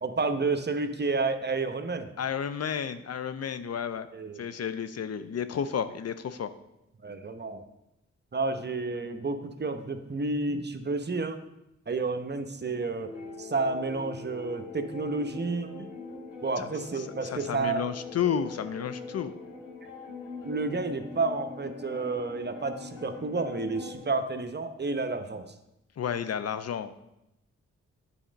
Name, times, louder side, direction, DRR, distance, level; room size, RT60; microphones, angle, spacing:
voice 1, 0.0-2.1 4.1-4.4 7.0-7.6 8.3-11.4 11.9-13.1 13.4-15.9 16.4-17.9 20.4-25.5, right 3 dB, 35° right, 8 dB, 0.9 m, -30 dB
voice 2, 2.2-4.1 4.4-6.5 16.6-16.7 17.0-19.3 26.0-27.1, left 8 dB, 55° left, 11 dB, 0.6 m, -32 dB
sound 1, 13.0-24.0, left 4 dB, 80° left, 2.6 m, -42 dB
9.0 x 4.2 x 5.1 m, 0.88 s
supercardioid pair, 45°, 31 cm